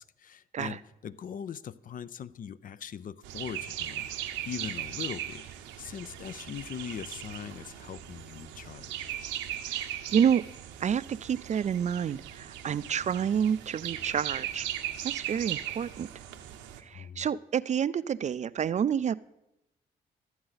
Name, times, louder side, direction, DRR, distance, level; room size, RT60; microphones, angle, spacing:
voice 1, 0.0-5.4 5.8-9.1 16.9-17.3, left 8 dB, 45° left, 0.4 m, -41 dB
sound 1, 3.2-16.8, right 11 dB, 85° right, 0.7 m, -38 dB
voice 2, 9.7-10.4 10.8-14.7 15.0-16.1 16.8-19.1, right 8 dB, 40° right, 0.4 m, -29 dB
12.5 x 7.8 x 4.0 m
hypercardioid pair, 50°, 19 cm